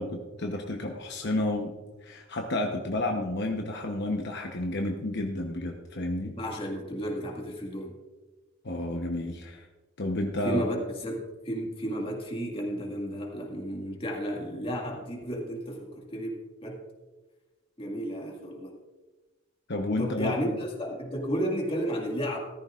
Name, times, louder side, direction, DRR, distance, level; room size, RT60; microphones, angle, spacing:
voice 1, 0.0-1.7 2.0-6.4 8.6-9.7 10.0-10.7 19.7-20.4, left 1 dB, 60° left, 2 dB, 1.0 m, -31 dB
voice 2, 6.3-8.0 10.4-16.8 17.8-18.8 20.0-22.4, equal, 30° left, 0 dB, 2.0 m, -33 dB
14.5 x 13.5 x 2.5 m, 1.2 s
head